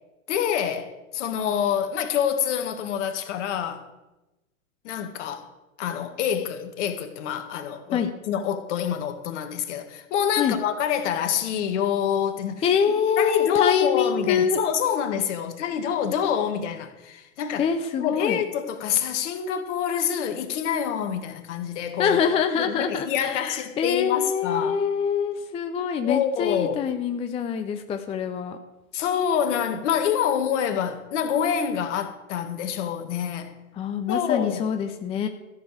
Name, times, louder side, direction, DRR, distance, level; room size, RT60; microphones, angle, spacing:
voice 1, 0.3-3.8 4.8-5.5 5.8-12.6 13.2-17.7 18.0-22.2 22.6-24.8 26.0-26.8 28.9-33.5 34.1-34.7, left 8 dB, 55° left, 1.9 m, -26 dB
voice 2, 12.6-14.6 17.6-18.4 22.0-28.6 33.8-35.3, left 7 dB, 15° left, 0.6 m, -25 dB
14.0 x 7.0 x 8.0 m
hypercardioid pair, 115°, 43 cm